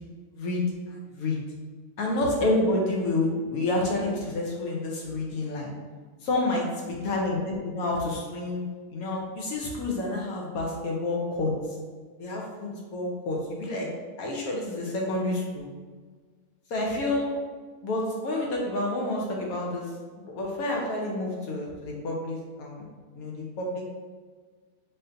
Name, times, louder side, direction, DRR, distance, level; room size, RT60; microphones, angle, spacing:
voice 1, 0.9-1.4 2.0-5.7 6.2-6.7 7.0-8.6 8.9-11.5 12.2-13.9 14.2-15.7 16.7-17.3 17.8-19.9 20.2-22.8 23.1-23.8, left 2 dB, 75° left, -1 dB, 1.1 m, -29 dB
4.1 x 2.6 x 2.6 m, 1.5 s
omnidirectional pair, 1.6 m